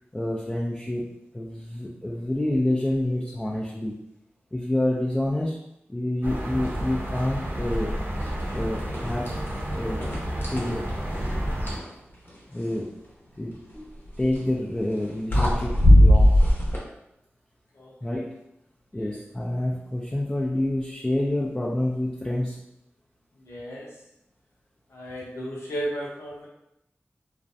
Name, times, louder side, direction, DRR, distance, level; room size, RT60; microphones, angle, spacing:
voice 1, 0.1-1.1 1.3-3.9 4.5-5.6 5.9-8.0 8.5-9.3 9.7-10.0 10.5-10.9 12.5-12.9 13.4-13.9 14.2-16.3 18.0-18.4 18.9-22.6, left 1 dB, 15° left, -4 dB, 0.4 m, -28 dB
sound 1, 6.2-11.8, equal, 50° right, 0.7 m, -30 dB
sound 2, 8.4-8.6 8.9-9.6 10.0-11.9 14.1-14.4 15.0-15.1 15.3-16.8, left 1 dB, 50° left, 0.7 m, -19 dB
voice 2, 23.4-23.9 24.9-26.5, right 1 dB, 85° left, -5 dB, 0.7 m, -34 dB
2.4 x 2.1 x 2.6 m, 0.82 s
cardioid pair, 50°, 4 cm